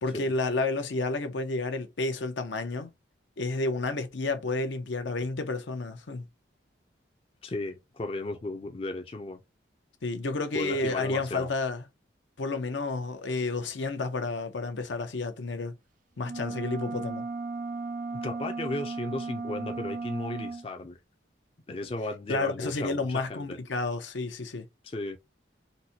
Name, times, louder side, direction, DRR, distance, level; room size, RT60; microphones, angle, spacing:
voice 1, 0.0-2.9 3.4-6.2 10.0-11.8 12.4-15.7 16.2-17.3 22.3-24.7, left 3 dB, 80° left, 0.7 m, -31 dB
voice 2, 7.4-9.4 10.5-11.5 18.2-21.0 21.7-23.6 24.8-25.2, left 2 dB, 30° left, 0.4 m, -35 dB
sound 1, 16.2-20.7, right 3 dB, 45° right, 0.3 m, -35 dB
4.0 x 2.1 x 2.7 m
head